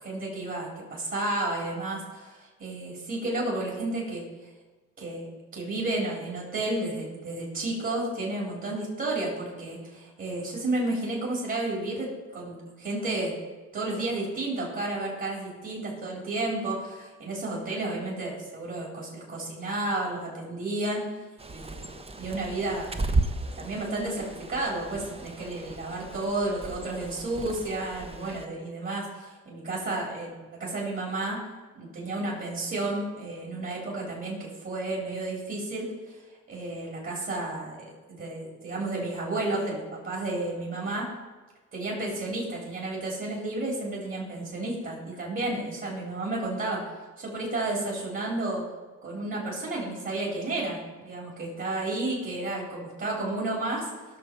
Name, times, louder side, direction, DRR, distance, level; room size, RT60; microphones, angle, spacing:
voice 1, 0.0-4.3 5.0-13.4 13.7-21.0 21.5-21.9 22.2-22.9 23.4-31.4 31.8-36.2 36.5-41.1 41.7-48.7 49.0-53.9, right 2 dB, 45° right, -4 dB, 3.8 m, -32 dB
Bird, 21.4-28.4, right 2 dB, 20° right, 0.9 m, -34 dB
17.0 x 6.5 x 5.3 m, 1.3 s
cardioid pair, 90°, 30 cm